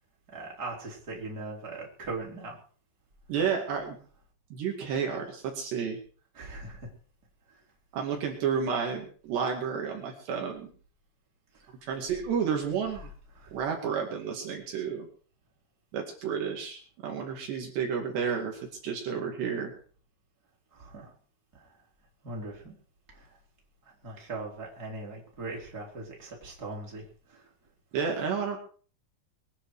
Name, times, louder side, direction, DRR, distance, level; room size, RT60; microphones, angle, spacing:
voice 1, 0.3-2.6 6.3-6.9 7.5-7.6 11.5-11.7 13.4-13.6 20.7-21.1 21.5-21.8 22.2-22.7 23.1-23.4 23.8-27.5, right 3 dB, 20° right, -2 dB, 4.4 m, -40 dB
voice 2, 3.3-4.0 4.5-6.0 7.9-10.7 11.8-13.1 13.5-15.1 15.9-19.7 27.9-28.6, right 6 dB, 65° right, 1 dB, 4.3 m, -31 dB
23.5 x 9.9 x 4.9 m, 0.42 s
omnidirectional pair, 5.4 m